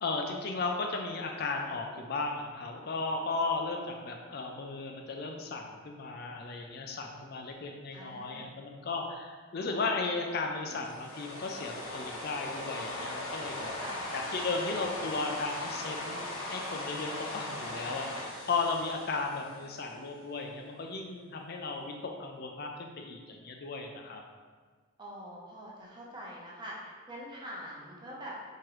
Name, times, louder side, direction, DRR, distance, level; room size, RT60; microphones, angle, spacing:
voice 1, 0.0-13.7 14.1-24.2, left 3 dB, 45° left, 2 dB, 0.4 m, -35 dB
voice 2, 7.9-8.5 13.7-14.1 25.0-28.3, equal, 20° right, -4 dB, 0.8 m, -44 dB
sound 1, 10.7-19.9, left 1 dB, 75° left, 0.9 m, -39 dB
4.6 x 3.6 x 3.1 m, 1.5 s
head